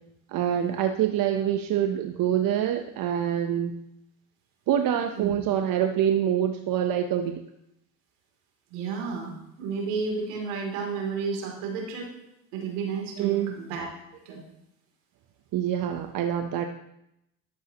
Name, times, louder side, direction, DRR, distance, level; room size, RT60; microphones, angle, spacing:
voice 1, 0.3-3.8 4.7-7.4 13.2-13.5 15.5-16.7, right 10 dB, 60° right, 6 dB, 1.0 m, -25 dB
voice 2, 8.7-12.1 12.5-13.9 14.2-14.4, right 5 dB, 85° right, 1 dB, 3.1 m, -32 dB
13.5 x 12.0 x 3.0 m, 0.82 s
hypercardioid pair, 65°, 37 cm